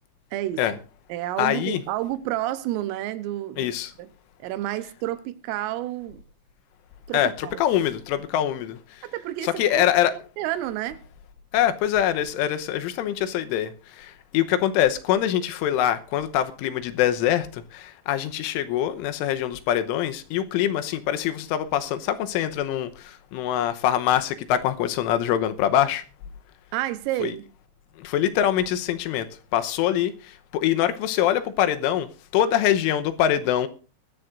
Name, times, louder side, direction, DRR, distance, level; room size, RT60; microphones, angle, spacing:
voice 1, 0.3-0.8 1.1-3.7 4.0-4.1 4.4-6.2 7.1-7.6 9.0-9.9 10.4-11.0 26.7-27.4, right 14 dB, 85° right, 3.6 m, -30 dB
voice 2, 1.4-1.8 3.6-3.9 7.1-9.0 9.4-10.1 11.5-26.0 27.2-27.3 28.0-29.3 29.5-33.7, left 11 dB, 80° left, 3.4 m, -24 dB
21.5 x 13.5 x 2.6 m
omnidirectional pair, 5.8 m